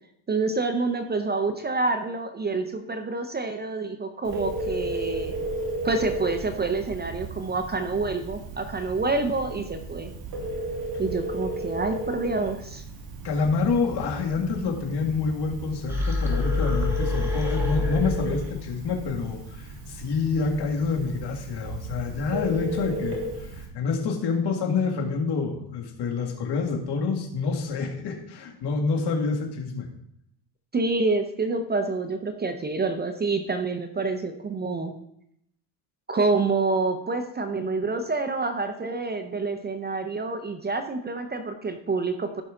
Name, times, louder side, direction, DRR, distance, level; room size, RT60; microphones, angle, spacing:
voice 1, 0.3-5.3 5.8-10.1 11.0-12.8 30.7-34.9 36.1-42.4, right 3 dB, 20° right, 7 dB, 0.7 m, -27 dB
Telephone, 4.2-23.7, right 2 dB, 50° right, 2.7 m, -34 dB
voice 2, 13.2-29.9, left 4 dB, 55° left, 2 dB, 2.2 m, -27 dB
sound 1, 15.9-18.7, left 3 dB, 5° right, 2.2 m, -27 dB
14.5 x 5.6 x 3.8 m, 0.75 s
cardioid pair, 120°, 47 cm